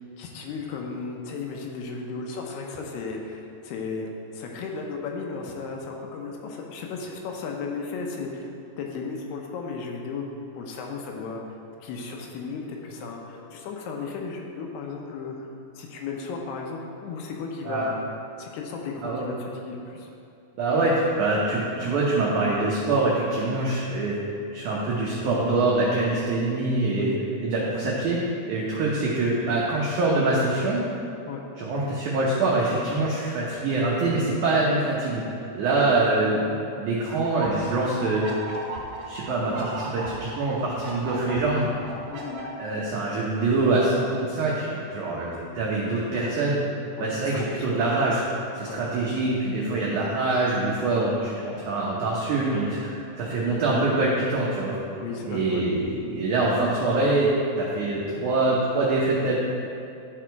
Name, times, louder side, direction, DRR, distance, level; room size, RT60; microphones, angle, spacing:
voice 1, 0.2-8.5 8.8-10.3 10.5-11.4 11.8-15.4 15.8-18.0 18.4-20.1 20.7-20.8 27.0-27.2 31.3-31.4 35.7-35.9 42.1-42.4 47.0-47.7 48.7-48.8 55.0-55.6, left 4 dB, 80° left, 1 dB, 2.7 m, -35 dB
voice 2, 20.6-24.2 24.5-27.1 27.4-28.2 28.5-30.8 31.6-38.3 39.1-41.7 42.6-46.6 47.0-48.2 48.5-54.8 55.3-57.3 57.6-59.4, right 2 dB, 80° right, -5 dB, 1.7 m, -24 dB
sound 1, 37.2-42.4, right 2 dB, 65° right, 2.0 m, -37 dB
11.0 x 4.9 x 4.5 m, 2.6 s
omnidirectional pair, 4.8 m